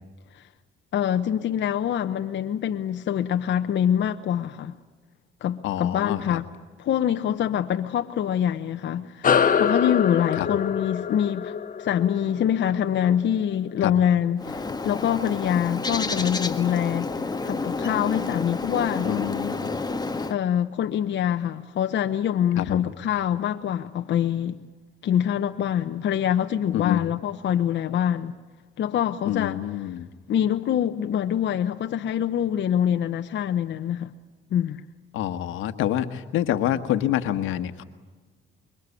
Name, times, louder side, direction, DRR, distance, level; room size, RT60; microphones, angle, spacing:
voice 1, 0.9-4.7 5.4-6.4 6.8-11.5 11.8-17.1 17.4-19.1 20.3-24.6 25.0-28.3 28.8-29.6 30.3-34.1 34.5-34.8, left 9 dB, 65° left, 1.0 m, -25 dB
voice 2, 5.6-6.4 10.4-10.5 13.8-13.9 19.0-19.7 22.6-22.8 26.7-27.0 29.2-30.1 35.1-37.8, left 12 dB, 90° left, 1.4 m, -27 dB
sound 1, 9.2-14.1, left 7 dB, 45° left, 1.5 m, -25 dB
Bird, 14.4-20.3, left 3 dB, 20° left, 1.8 m, -30 dB
25.5 x 23.0 x 8.5 m
cardioid pair, 90°, 20 cm